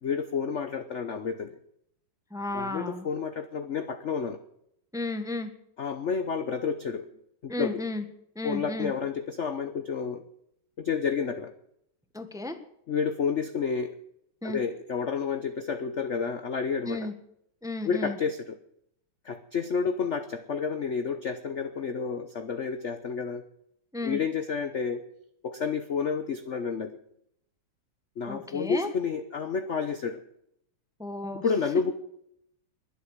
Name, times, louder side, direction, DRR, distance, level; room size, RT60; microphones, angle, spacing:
voice 1, 0.0-1.6 2.5-4.4 5.8-7.1 7.4-7.8 8.4-10.2 10.8-11.5 12.9-14.0 14.4-17.1 17.8-18.6 19.2-23.5 24.0-25.1 25.4-27.0 28.2-30.2 31.4-31.9, left 6 dB, 50° left, 9 dB, 0.8 m, -30 dB
voice 2, 2.3-3.1 4.9-5.5 7.5-8.0 8.3-8.9 12.1-12.6 14.4-14.6 16.9-17.1 17.6-18.2 23.9-24.2 28.2-28.9 31.0-31.4, left 2 dB, ahead, 8 dB, 1.1 m, -33 dB
22.0 x 8.2 x 7.4 m, 0.74 s
omnidirectional pair, 2.3 m